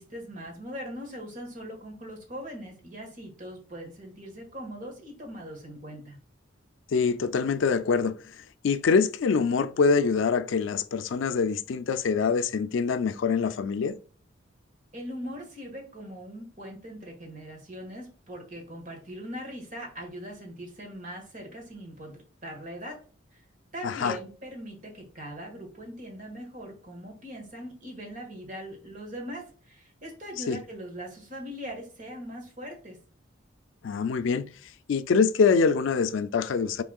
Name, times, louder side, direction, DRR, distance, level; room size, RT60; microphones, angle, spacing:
voice 1, 0.0-6.2 14.9-23.0 23.3-23.4 23.7-33.0, equal, 40° right, 1.5 m, -41 dB
voice 2, 6.9-14.0 23.8-24.2 30.5-30.6 33.8-34.5 34.9-36.8, left 5 dB, 75° left, 0.4 m, -25 dB
6.1 x 3.6 x 2.3 m
head